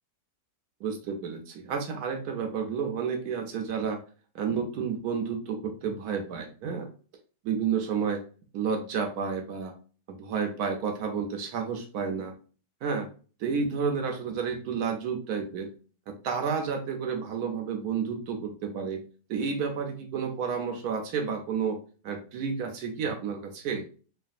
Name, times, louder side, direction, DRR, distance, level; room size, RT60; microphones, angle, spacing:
voice 1, 0.8-4.0 4.3-6.9 7.4-8.2 8.5-9.7 10.1-12.3 12.8-13.1 13.4-15.7 16.1-19.0 19.3-21.8 22.0-23.8, right 6 dB, 70° right, 3 dB, 1.0 m, -31 dB
3.2 x 2.2 x 2.5 m, 0.38 s
omnidirectional pair, 1.8 m